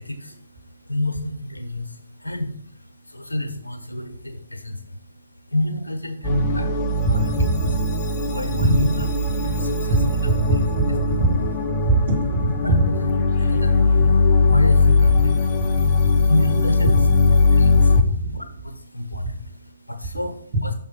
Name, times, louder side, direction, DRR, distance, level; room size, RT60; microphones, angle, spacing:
voice 1, 0.0-7.3 8.2-8.9 9.4-10.0 10.5-10.6 11.7-11.9 12.4-12.7 13.0-17.0 17.3-18.0 18.3-20.7, left 1 dB, 80° left, 6 dB, 1.2 m, -29 dB
sound 1, 6.2-18.0, left 3 dB, 25° left, 0.8 m, -19 dB
voice 2, 7.4-7.7 8.6-8.9 9.9-10.1 10.5-10.8 11.2-11.3 11.9-12.8 17.9-18.3, right 2 dB, 45° right, -2 dB, 3.0 m, -21 dB
6.4 x 4.3 x 5.9 m, 0.67 s
figure-of-eight pair, 135°, 0 cm